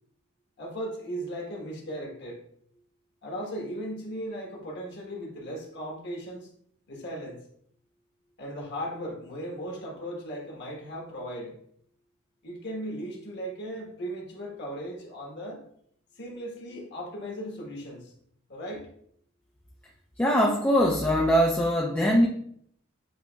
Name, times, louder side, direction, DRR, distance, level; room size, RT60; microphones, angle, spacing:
voice 1, 0.6-2.4 3.2-6.5 6.9-7.4 8.4-11.6 12.4-15.6 16.1-18.1 18.5-18.9, equal, 55° left, -1 dB, 1.2 m, -37 dB
voice 2, 20.2-22.3, equal, 10° left, -1 dB, 0.4 m, -22 dB
7.7 x 3.0 x 2.3 m, 0.67 s
head